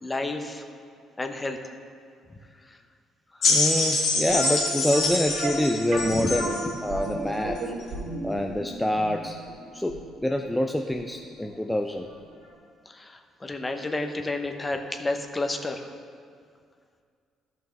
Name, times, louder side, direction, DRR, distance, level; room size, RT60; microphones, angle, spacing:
voice 1, 0.0-0.6 1.2-1.6 2.6-2.8 3.3-3.6 6.1-6.3 12.9-15.9, left 2 dB, 25° left, 5 dB, 0.9 m, -31 dB
sound 1, 3.4-6.7 7.6-7.7, left 3 dB, 70° left, 2.4 m, -25 dB
voice 2, 3.5-7.7 8.2-9.4 9.7-12.1, left 1 dB, 10° left, 3 dB, 0.5 m, -26 dB
sound 2, 4.3-11.1 11.4-11.5 12.1-12.2 12.5-12.6, right 2 dB, 70° right, 2.3 m, -35 dB
13.5 x 6.1 x 3.4 m, 2.2 s
hypercardioid pair, 55°, 0 cm